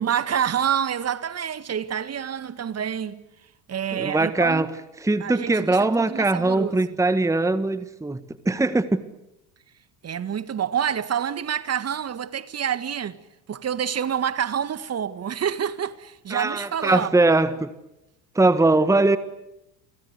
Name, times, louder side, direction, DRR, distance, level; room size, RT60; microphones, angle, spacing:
voice 1, 0.0-3.2 3.7-4.7 5.2-6.8 10.0-13.2 13.5-17.1, right 8 dB, 30° right, 1.7 m, -27 dB
voice 2, 3.9-4.7 5.0-9.0 16.3-17.7 18.3-19.2, right 2 dB, 5° right, 1.5 m, -21 dB
30.0 x 24.5 x 8.1 m
figure-of-eight pair, 70°, 49 cm